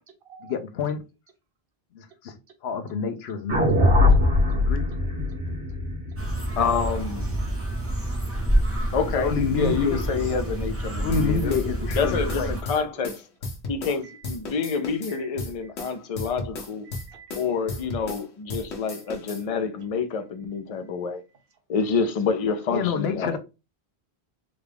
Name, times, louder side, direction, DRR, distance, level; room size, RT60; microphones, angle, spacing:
voice 1, 0.4-1.0 1.9-2.3 2.6-4.0 4.5-4.9 9.1-10.3 11.0-12.9 22.7-23.4, left 5 dB, 75° left, 0.9 m, -28 dB
sound 1, 3.5-7.8, left 2 dB, 85° right, 1.7 m, -22 dB
sound 2, 6.2-12.6, right 1 dB, 15° right, 0.8 m, -28 dB
voice 2, 6.6-7.4 8.9-11.5 11.9-13.2 13.7-16.9 17.4-21.2 21.7-23.4, left 5 dB, 45° left, 0.5 m, -27 dB
sound 3, 11.1-14.0 14.2-18.2 18.5-19.4, left 2 dB, 90° left, 1.2 m, -35 dB
voice 3, 16.8-17.4 19.1-19.2, right 7 dB, 60° right, 0.9 m, -49 dB
3.9 x 2.3 x 3.4 m
omnidirectional pair, 1.1 m